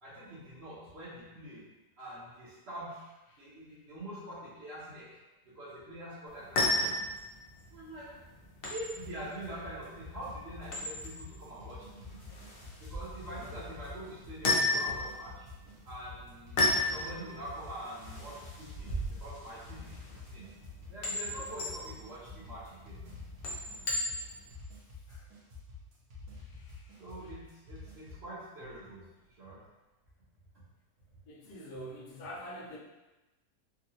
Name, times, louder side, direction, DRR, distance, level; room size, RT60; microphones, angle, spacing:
voice 1, 0.0-1.7 2.0-3.1 3.4-5.2 5.4-7.1 7.7-8.2 8.7-12.2 12.8-15.5 15.8-18.9 19.2-20.5 20.9-23.2 27.0-29.0 29.4-29.6, right 1 dB, 50° right, -12 dB, 1.0 m, -45 dB
sound 1, 6.3-24.5, left 2 dB, 65° left, 0.5 m, -35 dB
sound 2, 9.0-28.3, left 4 dB, 80° right, 1.3 m, -48 dB
voice 2, 31.3-32.8, equal, 80° left, -2 dB, 1.2 m, -44 dB
3.7 x 2.3 x 2.7 m, 1.1 s
omnidirectional pair, 1.7 m